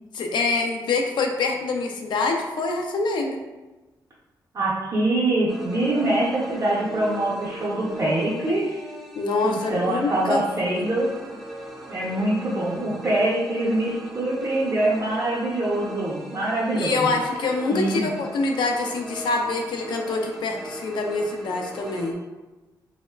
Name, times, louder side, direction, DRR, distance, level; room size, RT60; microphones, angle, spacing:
voice 1, 0.1-3.4 9.2-10.4 10.7-10.9 16.7-22.2, left 3 dB, 75° left, 2 dB, 0.4 m, -25 dB
voice 2, 4.5-8.8 9.4-11.1 11.9-17.2 17.7-18.1, right 1 dB, 40° right, -7 dB, 0.6 m, -24 dB
sound 1, 5.5-22.1, right 1 dB, ahead, 0.4 m, -39 dB
2.9 x 2.0 x 2.2 m, 1.1 s
cardioid pair, 80°, 8 cm